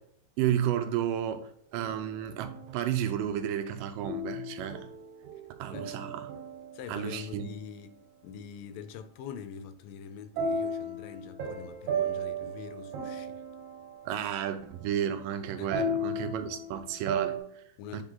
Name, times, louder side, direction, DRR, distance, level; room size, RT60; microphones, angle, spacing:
voice 1, 0.4-4.9 5.6-6.3 6.9-7.5 14.1-17.6 17.9-18.0, right 10 dB, 85° right, 2.2 m, -32 dB
sound 1, 1.7-3.0 4.0-7.2 10.4-17.4, right 2 dB, 65° right, 2.4 m, -36 dB
voice 2, 6.7-13.4 15.6-15.9 17.8-18.0, left 7 dB, 80° left, 2.2 m, -44 dB
8.0 x 3.5 x 3.8 m
omnidirectional pair, 4.0 m